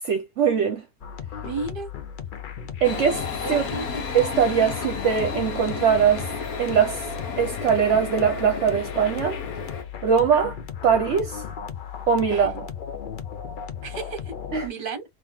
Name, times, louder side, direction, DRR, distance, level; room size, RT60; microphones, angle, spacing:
voice 1, 0.0-0.8 2.8-3.2 3.5-3.6 4.1-6.3 6.6-7.1 7.4-9.4 10.0-10.6 10.8-11.4 12.1-12.7 14.5-14.7, right 7 dB, 60° right, 1.0 m, -21 dB
sound 1, 1.0-14.7, left 8 dB, 50° left, 0.6 m, -36 dB
voice 2, 1.4-1.9 3.4-4.0 12.3-12.4 13.8-14.2 14.6-15.0, right 4 dB, 40° right, 1.2 m, -33 dB
sound 2, 2.8-9.8, left 5 dB, 85° left, 1.4 m, -33 dB
3.6 x 3.2 x 2.8 m
omnidirectional pair, 1.5 m